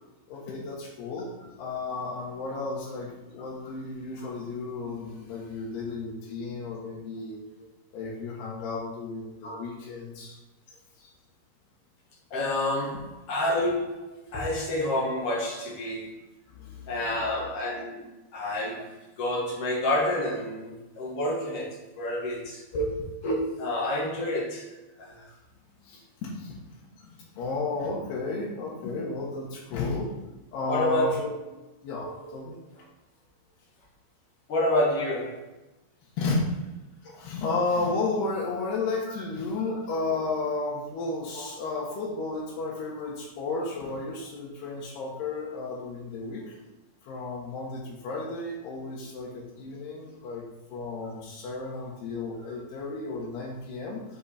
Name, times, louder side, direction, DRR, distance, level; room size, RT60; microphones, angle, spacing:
voice 1, 0.3-1.3 1.6-7.4 7.9-10.4 16.5-17.2 25.8-26.6 27.0-30.2 30.5-31.3 31.8-32.6 36.2-36.5 37.2-46.6 47.0-50.4 50.7-54.0, left 3 dB, 90° left, -5 dB, 3.4 m, -33 dB
voice 2, 12.3-16.1 16.9-18.0 18.3-21.7 22.0-24.7 25.0-25.2 30.7-31.1 31.9-32.3 34.5-35.5 37.0-37.2 39.6-39.7 41.3-41.5, left 1 dB, 60° left, -2 dB, 1.7 m, -29 dB
7.1 x 5.7 x 4.2 m, 1.0 s
omnidirectional pair, 4.5 m